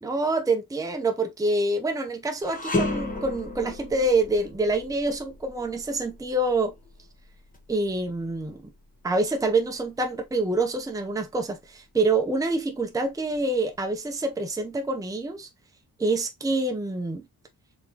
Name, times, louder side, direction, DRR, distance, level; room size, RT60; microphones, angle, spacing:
voice 1, 0.0-6.7 7.7-8.7 9.0-15.5 16.0-17.2, right 2 dB, 10° right, 0.6 m, -26 dB
sound 1, 2.4-11.7 12.1-12.3 13.1-14.0, left 2 dB, 20° left, 1.1 m, -35 dB
4.0 x 3.6 x 2.8 m
wide cardioid pair, 165°, 39 cm